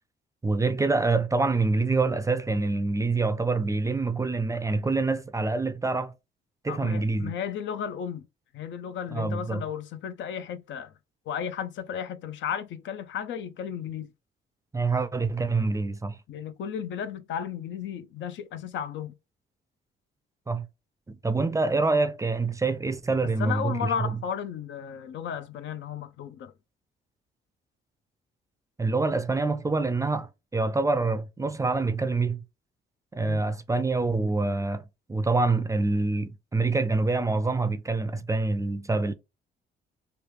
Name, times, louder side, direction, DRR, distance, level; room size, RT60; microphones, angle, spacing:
voice 1, 0.4-6.1 6.6-7.3 9.1-9.6 14.7-16.2 20.5-20.7 21.1-23.9 28.8-32.4 33.1-39.1, right 3 dB, 15° right, 0.4 m, -26 dB
voice 2, 6.7-8.3 8.5-10.9 11.3-14.1 16.3-19.2 23.4-26.5 33.2-33.4, left 8 dB, 70° left, 0.5 m, -34 dB
3.3 x 2.3 x 3.0 m
cardioid pair, 90°, 20 cm